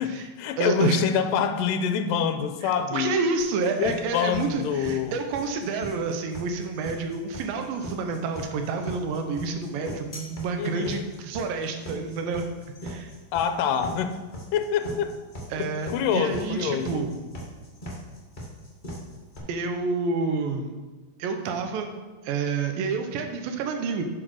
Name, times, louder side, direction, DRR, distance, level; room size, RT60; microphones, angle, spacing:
voice 1, 0.0-3.2 3.8-5.2 10.6-11.1 13.3-14.2 14.5-15.2 15.6-17.1, left 7 dB, 80° left, 8 dB, 2.2 m, -26 dB
voice 2, 0.6-1.0 2.6-12.5 12.8-13.1 15.5-17.2 19.5-20.7 21.2-21.9 22.2-24.0, right 4 dB, 85° right, 5 dB, 2.6 m, -29 dB
sound 1, 3.4-19.4, equal, 25° left, 1.0 m, -39 dB
7.7 x 6.1 x 6.2 m, 1.3 s
omnidirectional pair, 3.9 m